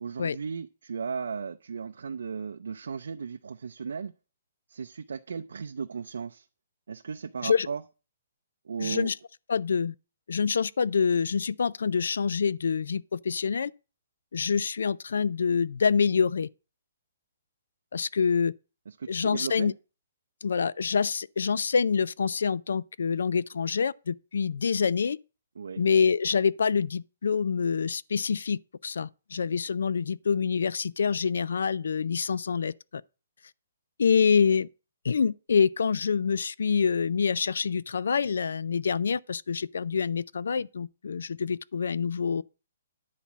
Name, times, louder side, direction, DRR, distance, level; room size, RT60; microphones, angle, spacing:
voice 1, 0.0-4.1 4.7-6.5 6.9-7.8 8.6-9.1 18.9-19.7 25.6-25.8, right 6 dB, 80° right, 0.5 m, -36 dB
voice 2, 8.8-9.1 9.5-9.9 10.3-13.7 14.3-16.5 17.9-18.5 19.1-19.7 20.4-25.2 25.8-33.0 34.0-34.7 35.0-42.4, left 6 dB, 70° left, 0.4 m, -26 dB
10.5 x 4.2 x 7.2 m
hypercardioid pair, 180°, 0 cm